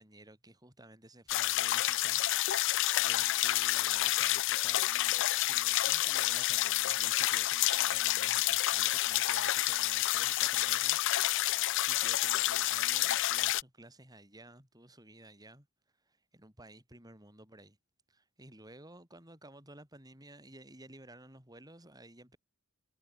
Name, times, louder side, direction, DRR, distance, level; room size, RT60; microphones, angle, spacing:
voice 1, 0.0-2.2 3.0-11.0 11.8-15.7 16.1-17.8 18.1-22.4, right 1 dB, 20° right, 7.5 m, -54 dB
sound 1, 1.3-13.6, left 16 dB, 60° left, 0.4 m, -29 dB
head